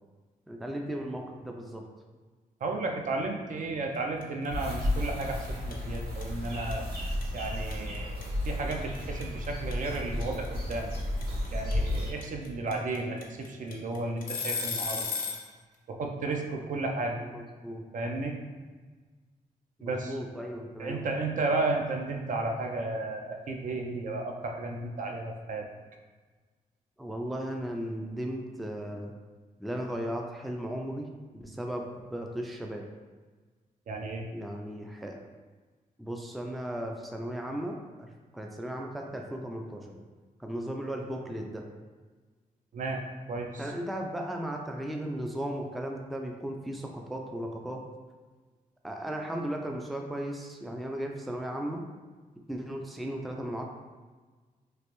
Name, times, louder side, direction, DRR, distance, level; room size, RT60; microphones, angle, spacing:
voice 1, 0.5-1.9 17.3-17.8 19.8-21.1 27.0-29.1 29.6-31.1 31.3-32.8 34.3-35.2 36.0-38.1 38.3-40.0 40.4-41.6 43.6-47.8 48.8-51.8 52.5-53.6, right 1 dB, ahead, 2 dB, 0.3 m, -36 dB
voice 2, 2.6-6.8 7.3-8.2 8.5-10.9 11.5-15.1 15.9-17.2 17.9-18.4 19.8-20.2 20.8-25.7 33.9-34.2 42.7-43.0 43.3-43.7, right 2 dB, 60° right, 2 dB, 0.5 m, -33 dB
sound 1, 4.2-4.5 4.7-15.5, left 5 dB, 70° left, 0.6 m, -34 dB
sound 2, 4.5-12.1, left 1 dB, 85° right, 1.3 m, -33 dB
3.2 x 2.5 x 3.0 m, 1.4 s
cardioid pair, 90°, 15 cm